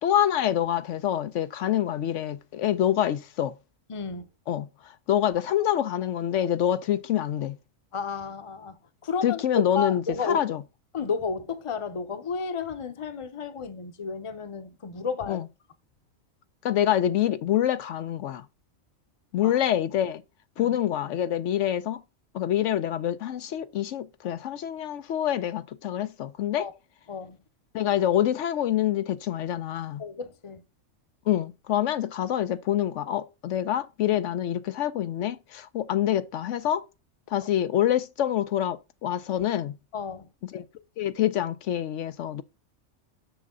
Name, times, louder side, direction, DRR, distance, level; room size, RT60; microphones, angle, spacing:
voice 1, 0.0-3.5 4.5-4.7 5.1-7.6 9.2-10.6 15.3-15.4 16.6-18.4 19.3-20.2 20.6-22.0 22.3-26.7 27.7-30.0 31.3-36.8 37.3-39.8 40.5-40.6 41.0-42.4, left 11 dB, 75° left, 0.9 m, -26 dB
voice 2, 3.9-4.3 7.9-8.8 9.0-9.4 9.7-10.4 10.9-15.4 19.4-19.5 20.6-20.8 26.6-26.7 27.1-27.4 30.0-30.6 37.4-37.5 39.9-40.3, left 5 dB, 30° left, 0.7 m, -32 dB
6.7 x 6.4 x 3.6 m
omnidirectional pair, 1.3 m